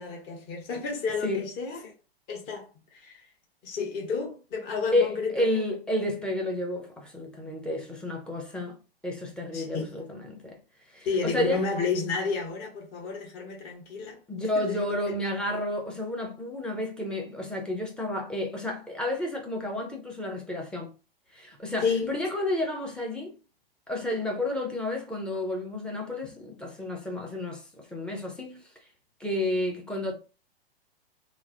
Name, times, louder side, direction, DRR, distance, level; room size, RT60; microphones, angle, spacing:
voice 1, 0.0-1.9 2.3-3.2 3.6-5.5 9.5-9.9 11.0-15.1 21.8-22.1, left 5 dB, 35° left, 1.0 m, -31 dB
voice 2, 4.9-10.6 10.9-11.6 14.3-20.9 21.3-23.4 23.9-28.6 29.2-30.1, left 1 dB, 5° left, 0.5 m, -31 dB
3.0 x 2.0 x 2.5 m
hypercardioid pair, 110°, 30 cm